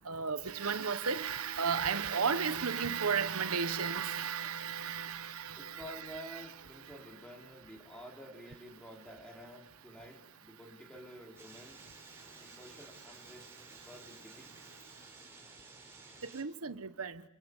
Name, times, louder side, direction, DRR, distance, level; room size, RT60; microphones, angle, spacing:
voice 1, 0.1-6.4 16.3-17.2, right 6 dB, 90° right, 1.1 m, -34 dB
voice 2, 4.7-11.8 12.4-14.6, equal, 5° left, 4.6 m, -51 dB
sound 1, 11.4-16.4, right 3 dB, 10° right, 5.4 m, -54 dB
28.0 x 25.5 x 8.2 m
head